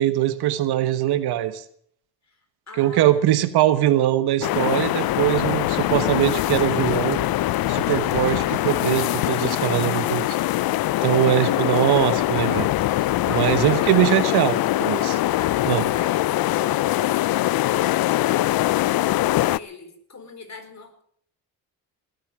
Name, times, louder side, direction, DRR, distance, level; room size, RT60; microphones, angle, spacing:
voice 1, 0.0-1.6 2.8-7.2 7.7-10.4 11.0-12.7 13.3-15.1 15.6-15.9, right 12 dB, 85° right, 12 dB, 1.3 m, -21 dB
voice 2, 2.7-3.2 13.1-14.3 15.0-21.0, left 4 dB, 45° left, 6 dB, 4.5 m, -42 dB
sound 1, 4.4-19.6, left 16 dB, 65° left, 0.5 m, -22 dB
20.0 x 8.7 x 7.4 m, 0.62 s
cardioid pair, 70°, 38 cm